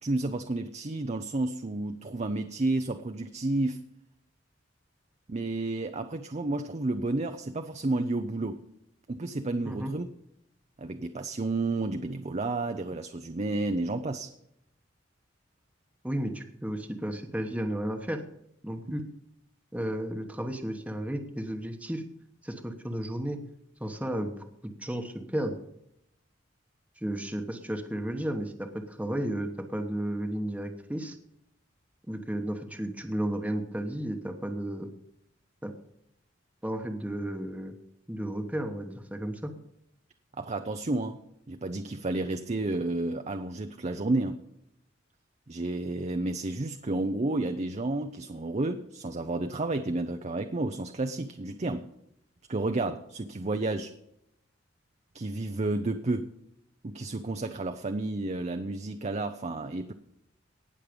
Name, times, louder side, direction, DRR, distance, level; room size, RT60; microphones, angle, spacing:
voice 1, 0.0-3.8 5.3-8.6 9.1-10.1 10.8-14.3 18.9-19.0 40.4-41.2 41.5-44.4 45.5-51.8 52.5-53.9 55.1-56.3 56.8-59.9, right 2 dB, 35° right, 7 dB, 0.6 m, -31 dB
voice 2, 16.0-18.2 18.6-19.0 19.7-22.0 22.4-23.4 23.8-24.3 24.6-25.6 27.0-31.2 32.1-34.9 35.6-35.7 36.6-37.8 38.1-39.5, right 1 dB, 5° right, 4 dB, 1.1 m, -33 dB
18.5 x 6.5 x 5.2 m, 0.78 s
head